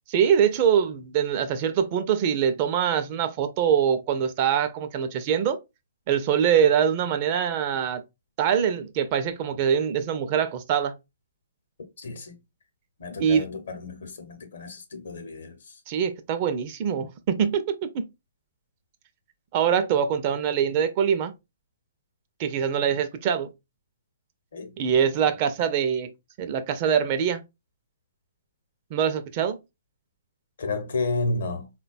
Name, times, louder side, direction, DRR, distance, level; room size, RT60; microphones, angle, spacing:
voice 1, 0.1-5.6 6.1-8.0 8.4-11.0 13.2-13.4 15.9-18.1 19.5-21.3 22.4-23.5 24.8-26.1 26.4-27.4 28.9-29.6, right 8 dB, 40° right, 0.4 m, -23 dB
voice 2, 12.0-12.4 13.0-15.6 24.5-24.7 30.6-31.7, left 2 dB, 70° left, 0.7 m, -31 dB
3.7 x 2.2 x 2.4 m
hypercardioid pair, 130°, 0 cm